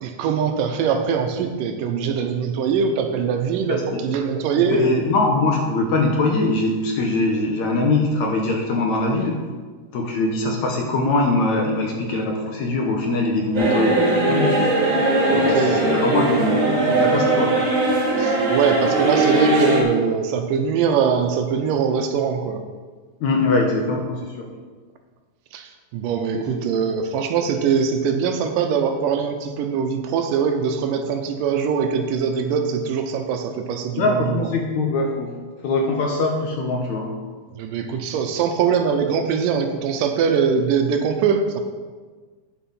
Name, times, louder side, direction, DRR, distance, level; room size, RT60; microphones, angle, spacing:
voice 1, 0.0-5.1 15.3-16.0 18.2-22.6 25.5-34.5 37.6-41.6, right 6 dB, 80° right, 5 dB, 2.2 m, -22 dB
voice 2, 4.6-9.4 9.9-14.6 15.3-17.7 23.2-24.5 26.3-26.7 34.0-35.3 35.6-37.1, left 2 dB, 65° left, 1 dB, 2.0 m, -22 dB
sound 1, 13.5-19.8, right 2 dB, 40° right, 2.2 m, -19 dB
9.1 x 7.1 x 5.4 m, 1.4 s
omnidirectional pair, 4.1 m